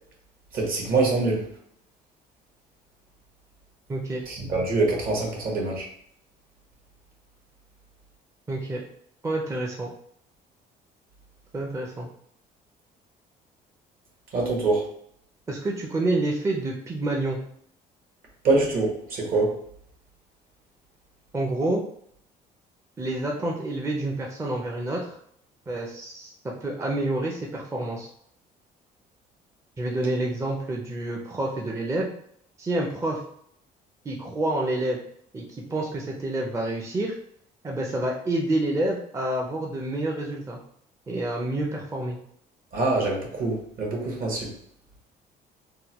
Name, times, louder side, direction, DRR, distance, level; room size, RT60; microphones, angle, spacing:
voice 1, 0.5-1.4 4.3-5.8 14.3-14.8 18.4-19.5 42.7-44.5, right 3 dB, 60° right, -1 dB, 1.4 m, -24 dB
voice 2, 3.9-4.2 8.5-8.8 9.2-9.9 11.5-12.1 15.5-17.4 21.3-21.8 23.0-25.2 25.7-28.1 29.8-32.1 32.6-33.2 34.0-35.0 35.3-37.1 37.6-40.6 41.1-42.2, right 2 dB, 15° right, -1 dB, 0.5 m, -28 dB
3.7 x 2.2 x 2.9 m, 0.68 s
cardioid pair, 110°, 17 cm